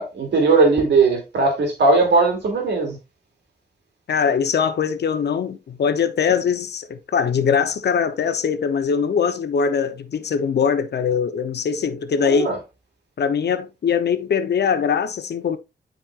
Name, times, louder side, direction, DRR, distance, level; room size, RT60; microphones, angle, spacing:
voice 1, 0.0-3.0 12.2-12.6, right 3 dB, 85° right, 3.0 m, -18 dB
voice 2, 4.1-12.6 13.2-15.6, left 6 dB, 75° left, 0.9 m, -22 dB
8.8 x 5.1 x 2.5 m
cardioid pair, 70°, 17 cm